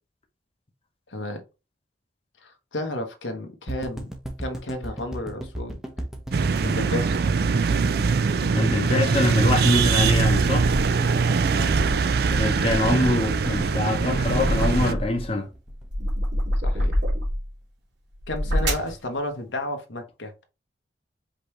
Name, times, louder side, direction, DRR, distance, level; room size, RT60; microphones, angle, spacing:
voice 1, 1.1-1.4 2.4-4.1 4.4-5.8 6.6-7.2 11.5-11.7 16.6-16.9 18.3-20.3, left 1 dB, 90° left, 1.1 m, -32 dB
sound 1, 3.7-15.8 16.1-16.2 16.4-16.5, right 1 dB, 5° right, 0.7 m, -34 dB
sound 2, 6.3-14.9, right 5 dB, 55° right, 0.4 m, -22 dB
voice 2, 8.5-10.7 12.3-15.5, left 2 dB, 30° left, 0.8 m, -24 dB
sound 3, 10.7-11.0 11.5-15.3 15.7-17.5 18.1-19.0, equal, 80° right, 2.1 m, -28 dB
5.2 x 3.0 x 3.2 m
head